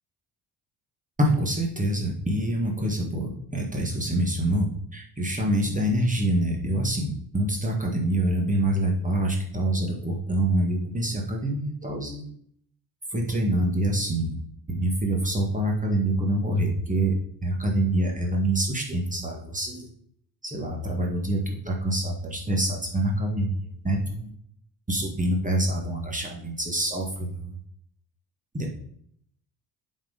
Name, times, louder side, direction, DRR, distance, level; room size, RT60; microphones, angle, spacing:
voice 1, 1.2-12.2 13.1-14.4 14.7-17.1 17.4-19.9 20.4-24.3 24.9-27.6 28.5-28.7, right 1 dB, 20° right, 0 dB, 1.9 m, -26 dB
7.5 x 4.7 x 5.1 m, 0.64 s
cardioid pair, 80°, 38 cm